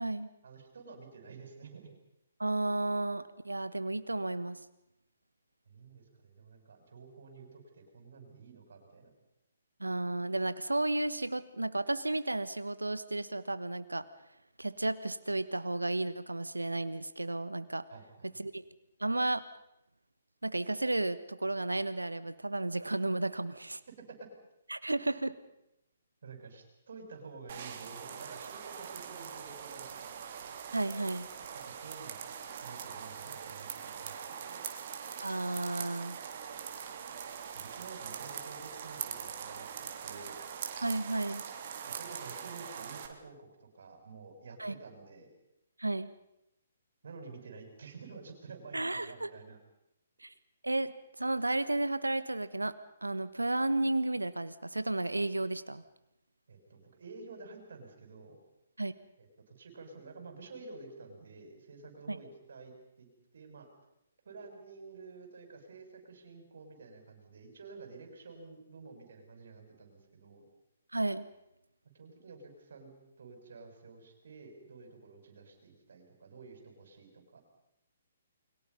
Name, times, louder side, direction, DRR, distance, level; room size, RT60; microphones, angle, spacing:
voice 1, 0.4-1.9 5.7-9.1 17.9-18.4 24.0-24.3 26.2-30.3 31.6-32.3 32.6-34.6 37.5-40.4 41.8-45.3 47.0-49.6 56.5-58.4 59.2-63.7 64.2-70.4 71.9-72.9 73.2-77.4, right 4 dB, 60° right, 5 dB, 6.3 m, -50 dB
voice 2, 2.4-4.6 9.8-14.0 14.6-17.8 18.4-18.6 19.0-19.4 20.4-23.8 24.7-25.3 30.7-31.3 35.2-36.2 40.8-41.4 44.6-44.8 45.8-46.1 48.7-49.3 50.2-50.3 50.6-50.9 51.2-52.7 53.0-55.8 58.8-58.9 62.1-62.2 70.9-71.3, right 2 dB, 85° right, 14 dB, 1.3 m, -33 dB
sound 1, 27.5-43.1, right 7 dB, 45° right, 3.0 m, -42 dB
29.5 x 23.0 x 5.5 m, 0.84 s
figure-of-eight pair, 130°, 0 cm